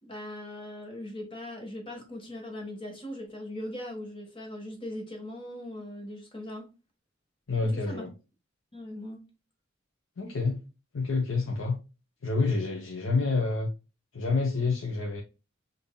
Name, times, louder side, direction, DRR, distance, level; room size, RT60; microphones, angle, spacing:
voice 1, 0.0-6.7 7.6-8.1 8.7-9.2, left 1 dB, 25° left, 1.4 m, -40 dB
voice 2, 7.5-8.1 10.2-10.6 10.9-11.8 12.2-13.7 14.1-15.2, left 3 dB, 70° left, 0.7 m, -28 dB
5.3 x 2.6 x 2.3 m
head